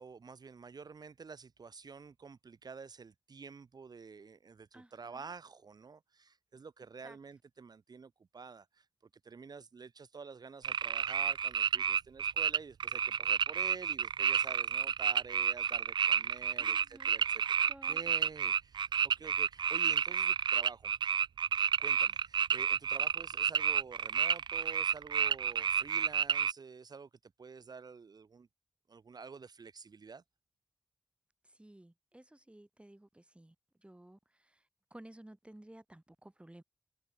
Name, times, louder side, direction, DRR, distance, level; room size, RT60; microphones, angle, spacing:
voice 1, 0.0-8.9 9.2-20.9 21.8-28.5 28.9-30.2, right 5 dB, 60° right, 1.4 m, -49 dB
voice 2, 4.7-5.3 7.0-7.2 16.6-17.3 17.6-18.1 31.4-34.6 34.9-36.6, right 1 dB, 15° right, 3.8 m, -55 dB
sound 1, 10.6-26.5, right 7 dB, 90° right, 0.7 m, -30 dB
cardioid pair, 60°, 8 cm